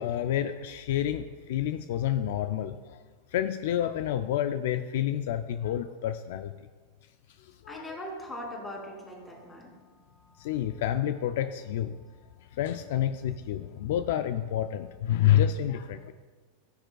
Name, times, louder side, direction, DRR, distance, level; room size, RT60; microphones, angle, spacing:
voice 1, 0.0-3.0 3.3-6.5 7.4-8.0 10.4-12.0 12.6-16.1, left 11 dB, 70° left, 9 dB, 0.4 m, -29 dB
voice 2, 7.7-10.8 12.0-12.6, equal, 15° left, -1 dB, 2.7 m, -42 dB
15.0 x 6.6 x 2.3 m, 1.4 s
hypercardioid pair, 120°, 0 cm